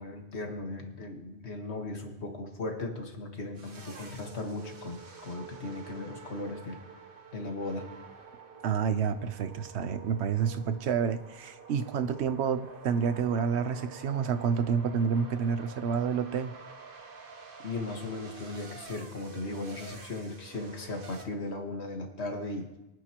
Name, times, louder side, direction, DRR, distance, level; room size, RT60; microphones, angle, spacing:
voice 1, 0.0-6.8 7.3-7.9 17.6-22.7, left 2 dB, 80° left, 3 dB, 1.9 m, -37 dB
sound 1, 3.6-21.3, right 5 dB, 55° right, 1.2 m, -48 dB
voice 2, 8.6-16.5, right 7 dB, 85° right, 11 dB, 1.0 m, -29 dB
23.0 x 9.5 x 3.0 m, 0.94 s
omnidirectional pair, 1.1 m